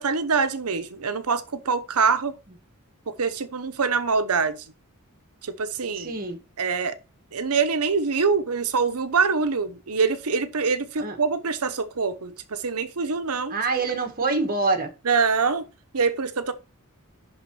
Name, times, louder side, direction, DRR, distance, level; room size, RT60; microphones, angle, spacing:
voice 1, 0.0-2.3 3.1-4.6 5.4-6.1 6.6-7.0 7.3-13.6 15.0-15.6 15.9-16.5, right 5 dB, 80° right, 0.9 m, -24 dB
voice 2, 6.0-6.4 11.0-11.2 13.5-14.9, right 3 dB, 40° right, 1.6 m, -25 dB
10.5 x 3.8 x 3.0 m
head